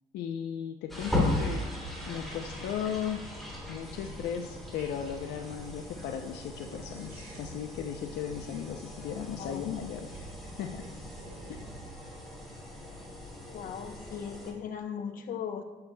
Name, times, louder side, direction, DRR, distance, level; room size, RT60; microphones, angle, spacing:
voice 1, 0.1-1.6 2.1-3.2 3.7-10.9 11.5-11.6, left 8 dB, 80° left, 4 dB, 0.6 m, -36 dB
sound 1, 0.9-14.5, left 2 dB, ahead, 2.8 m, -38 dB
sound 2, 1.9-11.9, right 2 dB, 60° right, 2.0 m, -50 dB
voice 2, 8.9-9.6 13.4-15.6, left 7 dB, 55° left, 5 dB, 0.9 m, -39 dB
11.5 x 8.8 x 2.3 m, 1.1 s
cardioid pair, 110°, 17 cm